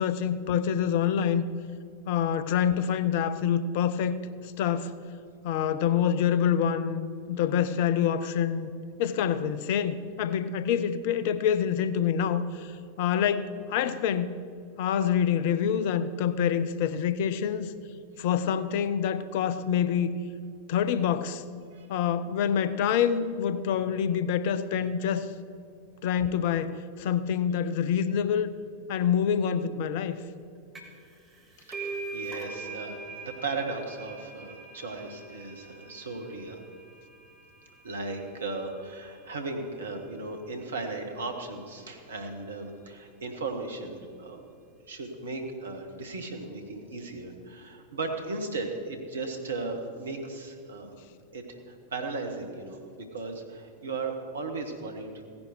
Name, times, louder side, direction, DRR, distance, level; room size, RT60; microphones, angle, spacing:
voice 1, 0.0-1.4 2.1-4.2 4.6-4.9 5.4-8.7 9.0-12.7 13.0-14.4 14.8-17.7 18.2-20.1 20.7-21.4 21.9-25.3 26.0-28.5 28.9-30.2, left 8 dB, 50° left, 14 dB, 0.6 m, -26 dB
sound 1, 30.8-31.1 31.3-38.6, right 3 dB, 15° right, 2.2 m, -42 dB
voice 2, 31.6-36.6 37.8-44.5 44.9-50.9 51.3-55.1, right 3 dB, 70° right, 4 dB, 1.6 m, -36 dB
16.5 x 10.5 x 4.6 m, 2.4 s
figure-of-eight pair, 90°, 0 cm